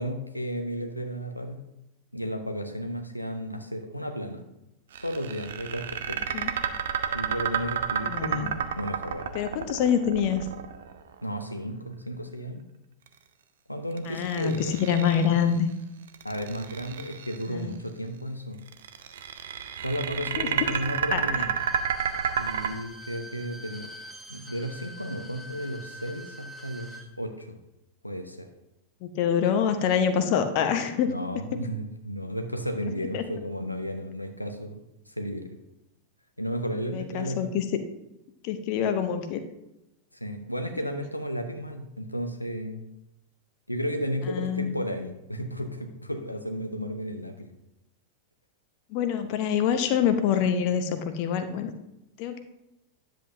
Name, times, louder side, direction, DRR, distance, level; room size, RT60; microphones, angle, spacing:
voice 1, 0.0-1.6 2.1-4.4 5.0-6.2 7.1-9.7 11.2-12.6 13.7-14.7 16.2-18.6 19.8-21.5 22.4-23.9 24.3-27.6 28.0-28.5 29.8-30.0 31.0-34.8 35.1-35.6 36.4-37.4 40.1-42.9 43.7-47.5, equal, 90° left, 5 dB, 0.7 m, -33 dB
sound 1, 4.9-11.1 14.0-15.5 16.1-17.4 18.7-22.7, right 8 dB, 60° right, 0.6 m, -30 dB
voice 2, 8.0-8.5 9.3-10.5 14.0-15.7 17.5-17.8 20.4-20.5 21.1-21.5 29.0-31.1 33.1-33.2 36.9-37.6 38.4-39.4 44.3-44.7 48.9-51.7 52.2-52.4, left 8 dB, 45° left, 8 dB, 0.7 m, -26 dB
Bowed string instrument, 21.4-27.1 27.4-27.5, right 1 dB, 5° right, 1.0 m, -45 dB
10.0 x 7.6 x 2.7 m, 0.88 s
figure-of-eight pair, 90°, 0 cm